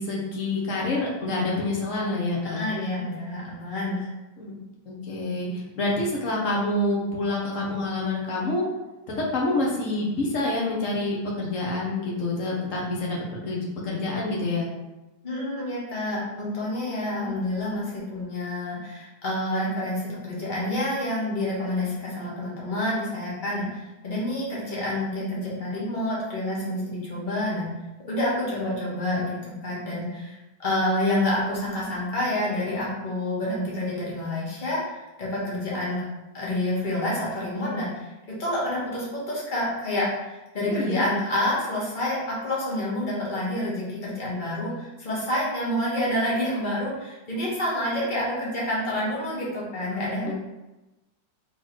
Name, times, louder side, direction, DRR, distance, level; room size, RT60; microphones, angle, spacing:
voice 1, 0.0-2.7 4.4-4.5 4.8-8.6 9.3-14.7 40.7-41.0 50.2-50.3, left 2 dB, 55° left, -3 dB, 1.3 m, -27 dB
voice 2, 2.4-4.1 15.2-27.7 28.1-36.0 36.3-50.3, left 1 dB, 30° left, -6 dB, 1.4 m, -28 dB
4.0 x 3.9 x 3.3 m, 1.0 s
omnidirectional pair, 1.8 m